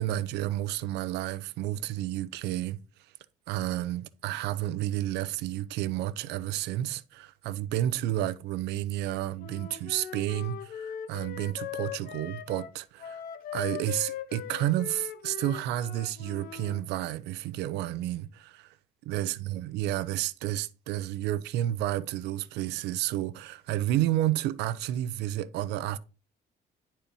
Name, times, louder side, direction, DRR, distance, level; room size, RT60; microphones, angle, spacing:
voice 1, 0.0-2.8 3.5-13.2 13.5-18.7 19.1-26.0, right 13 dB, 85° right, 0.7 m, -31 dB
Wind instrument woodwind instrument, 9.4-16.8, left 10 dB, 60° left, 0.9 m, -40 dB
10.5 x 4.4 x 5.3 m
cardioid pair, 110°, 17 cm